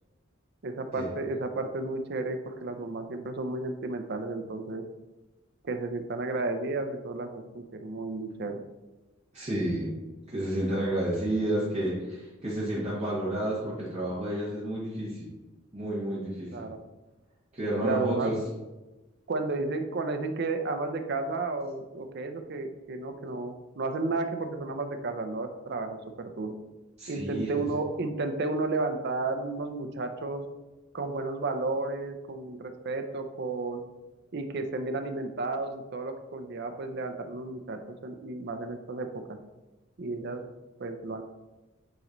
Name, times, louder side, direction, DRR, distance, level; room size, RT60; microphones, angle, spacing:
voice 1, 0.6-4.8 5.6-8.6 16.5-16.8 17.8-18.3 19.3-26.5 27.1-30.4 30.9-33.8 34.3-39.4 40.0-40.4 40.8-41.2, right 3 dB, 55° right, 6 dB, 0.5 m, -32 dB
voice 2, 9.3-9.9 10.3-15.3 15.7-16.6 17.5-18.4 27.0-27.6, right 1 dB, 30° right, -9 dB, 1.5 m, -30 dB
9.1 x 3.0 x 3.9 m, 1.1 s
head